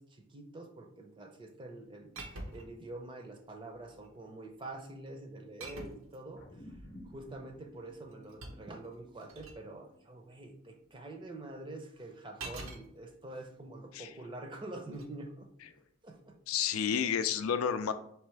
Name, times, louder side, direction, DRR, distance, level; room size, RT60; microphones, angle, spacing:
voice 1, 0.0-6.7 7.0-15.5 16.0-16.4, right 2 dB, 25° right, 4 dB, 0.5 m, -46 dB
sound 1, 2.1-2.8 3.7-4.2 5.6-6.2 7.9-9.6 12.4-12.8 14.8-15.1, right 2 dB, 80° right, 0.8 m, -45 dB
sound 2, 6.4-11.1, left 1 dB, 45° left, 0.7 m, -55 dB
voice 2, 16.5-17.9, left 8 dB, 90° left, 10 dB, 0.4 m, -30 dB
4.6 x 3.3 x 3.2 m, 0.74 s
head